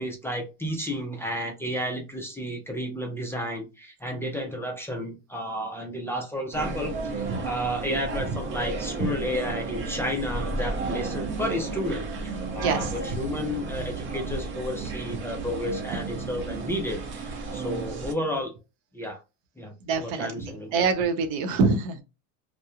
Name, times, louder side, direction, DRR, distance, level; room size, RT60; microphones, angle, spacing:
voice 1, 0.0-12.1 12.5-18.5 18.9-19.2 19.6-20.8, equal, 5° left, 0.3 m, -32 dB
sound 1, 6.5-18.1, right 3 dB, 35° right, 0.7 m, -33 dB
voice 2, 12.6-13.2 19.8-22.0, right 4 dB, 80° right, 0.8 m, -26 dB
2.9 x 2.1 x 2.3 m
cardioid pair, 145°, 36 cm